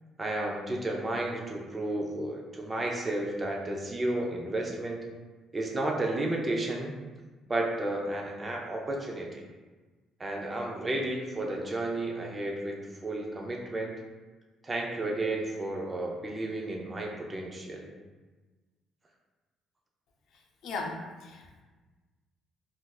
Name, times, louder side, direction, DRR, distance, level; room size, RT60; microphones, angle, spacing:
voice 1, 0.2-5.1 5.5-6.9 7.5-9.4 10.2-12.8 13.0-13.9 14.6-17.9, right 1 dB, 20° right, -1 dB, 0.4 m, -32 dB
voice 2, 20.6-21.6, left 3 dB, 65° left, 2 dB, 0.5 m, -37 dB
3.7 x 2.4 x 2.3 m, 1.3 s
cardioid pair, 155°, 0 cm